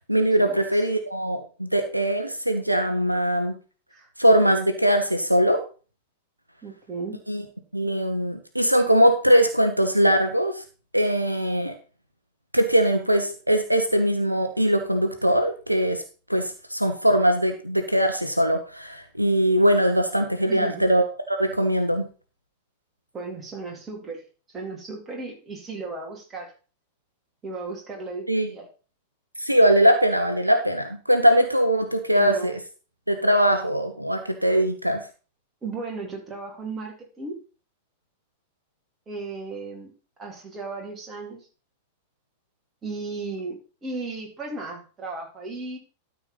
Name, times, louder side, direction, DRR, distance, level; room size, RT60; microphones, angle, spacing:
voice 1, 0.1-3.5 4.2-5.6 7.3-7.4 7.7-10.6 10.9-11.7 12.5-16.0 16.3-22.0 28.3-28.5 29.4-32.6 33.1-35.0, equal, 90° right, 7 dB, 1.0 m, -21 dB
voice 2, 6.6-7.2 20.5-20.9 23.1-24.2 24.5-26.5 27.4-28.7 32.1-32.6 35.6-37.4 39.1-39.9 40.2-41.5 42.8-45.8, right 3 dB, 20° right, 0 dB, 3.6 m, -35 dB
12.5 x 4.6 x 5.5 m, 0.36 s
figure-of-eight pair, 90°, 0 cm